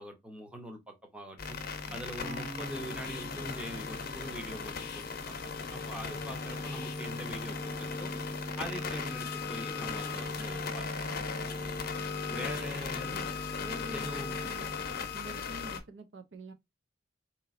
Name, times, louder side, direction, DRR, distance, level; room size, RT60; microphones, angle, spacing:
voice 1, 0.0-1.6 1.9-5.4 5.7-8.1 8.6-11.2 11.5-11.7 12.3-13.2 13.9-14.4, equal, 5° right, 0.7 m, -43 dB
sound 1, 1.4-15.8, left 6 dB, 50° left, 0.7 m, -38 dB
sound 2, 2.2-6.4, right 2 dB, 40° right, 1.0 m, -47 dB
sound 3, 3.2-4.4 5.4-15.2, left 1 dB, 15° left, 0.3 m, -41 dB
voice 2, 13.6-14.8 15.1-16.5, right 2 dB, 65° right, 0.5 m, -47 dB
3.9 x 2.9 x 2.4 m
head